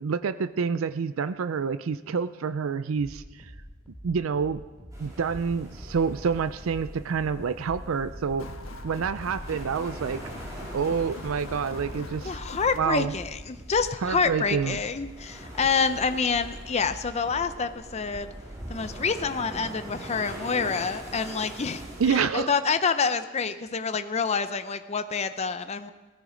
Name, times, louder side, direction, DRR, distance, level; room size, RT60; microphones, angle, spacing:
voice 1, 0.0-3.5 4.0-4.6 5.0-8.5 8.8-10.2 10.7-12.4 12.8-13.1 14.0-14.8 22.0-22.5, right 6 dB, 80° right, 13 dB, 0.4 m, -28 dB
sound 1, 2.9-17.7, equal, ahead, 2.6 m, -47 dB
sound 2, 4.9-22.2, right 1 dB, 20° right, 4.2 m, -42 dB
sound 3, 8.4-12.8, left 2 dB, 75° left, 1.4 m, -41 dB
voice 2, 12.2-18.3 18.7-21.8 22.1-25.9, left 5 dB, 35° left, 10 dB, 0.6 m, -27 dB
18.0 x 14.0 x 5.1 m, 1.3 s
head